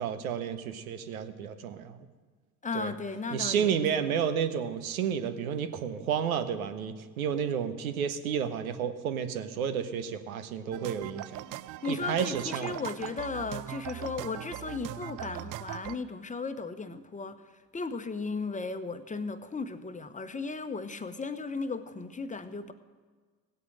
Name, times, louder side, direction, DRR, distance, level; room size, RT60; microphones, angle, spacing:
voice 1, 0.0-2.1 2.7-2.9 3.3-11.3 11.9-12.8, right 8 dB, 90° right, 10 dB, 0.9 m, -31 dB
voice 2, 2.6-3.7 11.8-17.4 17.7-22.7, left 4 dB, 20° left, 10 dB, 1.0 m, -35 dB
sound 1, 10.7-16.0, right 14 dB, 50° right, 0.5 m, -40 dB
16.0 x 8.3 x 6.4 m, 1.5 s
hypercardioid pair, 60°, 41 cm